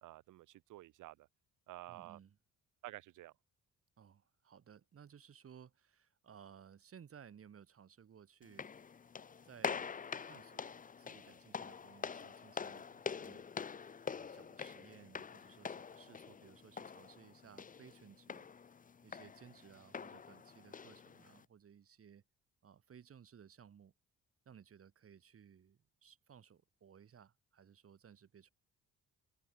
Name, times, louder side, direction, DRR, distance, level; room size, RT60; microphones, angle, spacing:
voice 1, 0.0-1.3 1.7-2.2 2.8-3.3, right 16 dB, 85° right, 1.1 m, -51 dB
voice 2, 1.9-2.4 4.0-8.7 9.4-10.0 10.2-10.7 11.0-13.4 14.0-18.5 19.0-22.2 22.6-23.9 24.4-28.5, right 8 dB, 50° right, 2.9 m, -59 dB
sound 1, 8.4-21.5, left 6 dB, 25° left, 0.7 m, -46 dB
cardioid pair, 90°, 30 cm